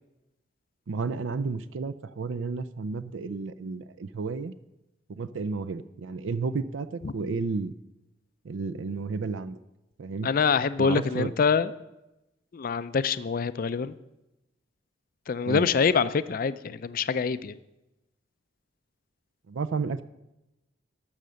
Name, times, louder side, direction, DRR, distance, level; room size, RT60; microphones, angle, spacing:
voice 1, 0.9-4.5 5.1-7.7 8.4-9.6 10.0-10.3 10.8-11.3 15.5-15.7 19.5-20.0, right 4 dB, 75° right, 15 dB, 0.4 m, -32 dB
voice 2, 10.2-11.7 12.5-13.9 15.3-17.6, left 5 dB, 45° left, 14 dB, 0.4 m, -25 dB
13.5 x 6.6 x 6.3 m, 0.94 s
head